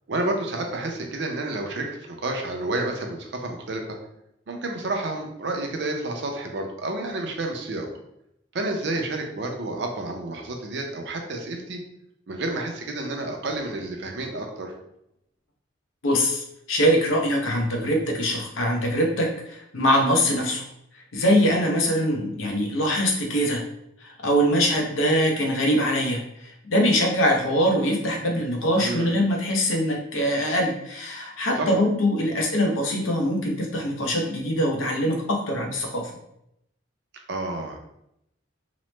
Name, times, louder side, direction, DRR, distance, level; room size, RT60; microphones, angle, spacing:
voice 1, 0.1-4.0 4.5-7.9 8.5-11.8 12.3-14.7 28.8-29.1 31.6-31.7 37.3-37.8, right 2 dB, 60° right, 3 dB, 0.5 m, -30 dB
voice 2, 16.0-20.6 21.1-23.6 24.0-36.1, equal, 90° left, 1 dB, 0.6 m, -23 dB
2.9 x 2.0 x 3.1 m, 0.78 s
head